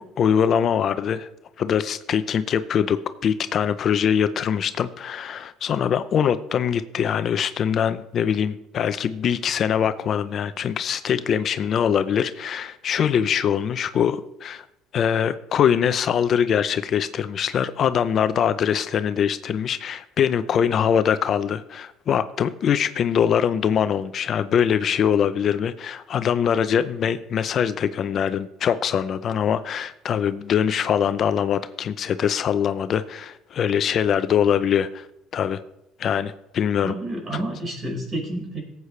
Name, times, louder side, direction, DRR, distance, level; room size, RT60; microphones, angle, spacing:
voice 1, 0.2-1.3 1.6-14.7 14.9-35.1 35.3-35.6 36.0-36.9, left 8 dB, 50° left, 12 dB, 0.5 m, -23 dB
voice 2, 36.8-38.6, right 1 dB, 35° right, -1 dB, 4.7 m, -29 dB
18.0 x 8.2 x 3.3 m, 0.85 s
cardioid pair, 100°, 0 cm